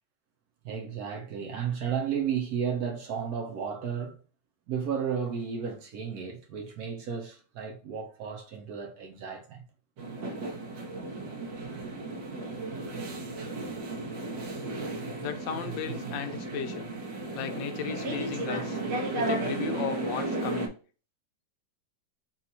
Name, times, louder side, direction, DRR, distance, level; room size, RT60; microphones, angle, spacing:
voice 1, 0.6-4.2 4.7-9.6 11.7-11.9, right 7 dB, 60° right, 1.1 m, -33 dB
sound 1, 10.0-20.7, right 2 dB, 85° right, 1.7 m, -34 dB
voice 2, 15.2-16.9 17.3-18.8 19.2-20.7, left 7 dB, 80° left, 1.3 m, -35 dB
4.2 x 2.4 x 4.1 m
omnidirectional pair, 2.0 m